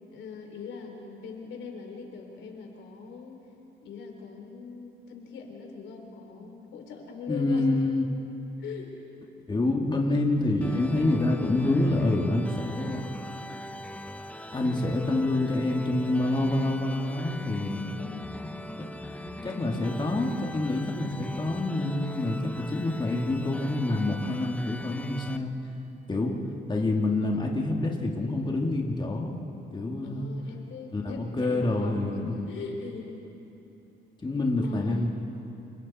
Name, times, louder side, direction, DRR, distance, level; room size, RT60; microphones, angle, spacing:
voice 1, 0.1-3.4 3.8-7.8 8.6-9.1 17.9-18.4 30.0-33.2 34.6-35.1, left 5 dB, 75° left, 2 dB, 4.1 m, -41 dB
voice 2, 7.3-8.1 9.5-13.1 14.5-18.0 18.4-18.5 19.2-25.5 26.1-26.3 26.7-29.3 29.7-30.3 30.9-32.4 34.2-35.1, left 2 dB, 25° left, -1 dB, 2.4 m, -27 dB
sound 1, 10.6-25.4, left 1 dB, 5° left, 0.9 m, -41 dB
30.0 x 23.5 x 4.3 m, 2.9 s
cardioid pair, 90°, 20 cm